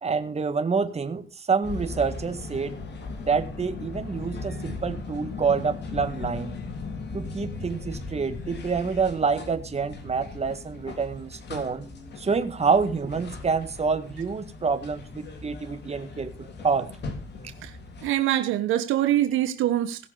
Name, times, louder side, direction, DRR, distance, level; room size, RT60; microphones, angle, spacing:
voice 1, 0.0-2.8 3.3-6.6 7.1-11.9 12.2-16.9, right 5 dB, 30° right, 8 dB, 1.8 m, -27 dB
sound 1, 1.6-18.1, left 3 dB, 60° left, 3.4 m, -38 dB
voice 2, 18.0-20.1, right 13 dB, 85° right, 10 dB, 1.1 m, -24 dB
18.0 x 6.7 x 5.3 m, 0.34 s
cardioid pair, 90°, 20 cm